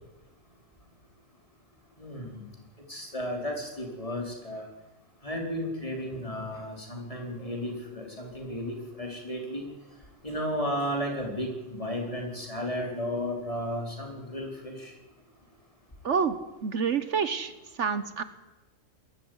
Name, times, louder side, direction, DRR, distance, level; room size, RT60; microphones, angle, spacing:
voice 1, 2.0-2.5 2.9-4.7 5.2-9.7 10.2-14.9, equal, 25° left, 1 dB, 4.6 m, -34 dB
voice 2, 16.0-16.4 16.6-17.5 17.8-18.2, right 6 dB, 65° right, 12 dB, 1.3 m, -27 dB
21.5 x 14.0 x 9.5 m, 1.1 s
omnidirectional pair, 1.4 m